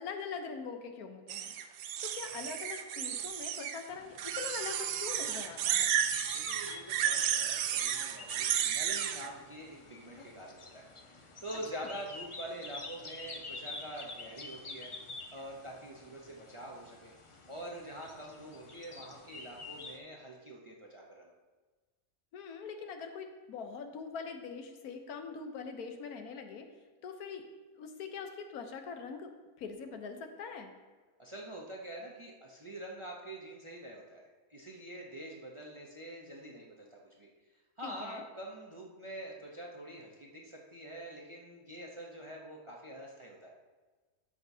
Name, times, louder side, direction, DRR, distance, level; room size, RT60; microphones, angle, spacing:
voice 1, 0.0-1.5 2.0-5.9 11.7-11.9 22.3-26.7 27.0-27.5 27.8-29.3 29.6-30.7 37.8-38.2, left 5 dB, 80° left, 5 dB, 1.3 m, -43 dB
sound 1, 1.3-3.8 4.2-9.3, right 9 dB, 85° right, 1.1 m, -33 dB
sound 2, 3.9-20.0, left 3 dB, 45° left, 0.4 m, -48 dB
voice 2, 6.3-14.9 15.3-17.1 17.5-21.3 31.2-34.2 34.5-37.3 37.8-43.5, right 1 dB, 25° right, -2 dB, 0.7 m, -46 dB
13.5 x 6.1 x 2.7 m, 1.3 s
omnidirectional pair, 1.6 m